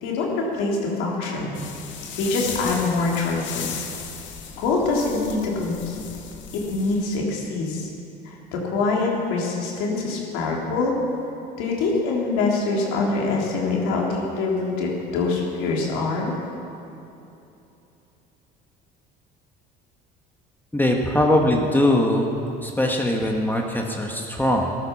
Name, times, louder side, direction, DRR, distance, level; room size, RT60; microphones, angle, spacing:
voice 1, 0.0-1.6 2.2-3.9 4.6-6.0 6.7-7.9 8.2-10.9 11.6-16.4, left 3 dB, 80° left, -2 dB, 3.2 m, -24 dB
sound 1, 1.5-7.2, left 7 dB, 65° left, 1.9 m, -36 dB
voice 2, 20.7-22.3 22.6-24.7, left 1 dB, 10° left, 0 dB, 1.6 m, -21 dB
14.5 x 12.5 x 6.0 m, 2.9 s
supercardioid pair, 75°, 21 cm